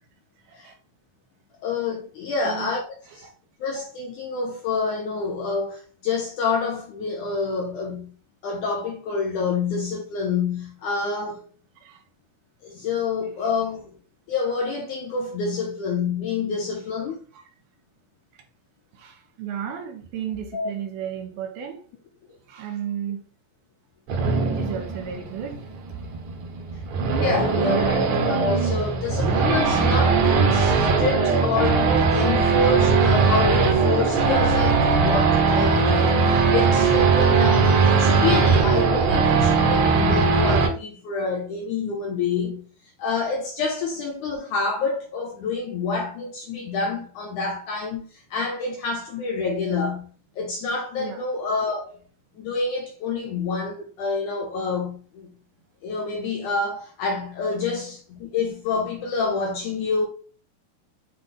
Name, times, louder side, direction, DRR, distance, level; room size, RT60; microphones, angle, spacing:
voice 1, 1.6-2.8 3.2-3.3 3.6-8.1 8.4-11.4 12.6-13.8 14.3-17.2 20.5-20.7 27.2-42.6 43.0-50.0 50.4-51.8 52.4-55.3 55.8-60.1, left 4 dB, 70° left, 1.9 m, -27 dB
voice 2, 18.9-21.8 22.5-23.2 24.5-25.6 25.9-26.0 27.4-28.2 32.5-32.6 51.0-51.2, right 9 dB, 75° right, 2.5 m, -33 dB
Race car auto racing / Idling / Accelerating revving vroom, 24.1-40.7, right 4 dB, 60° right, 2.3 m, -20 dB
7.9 x 3.4 x 3.9 m
omnidirectional pair, 4.6 m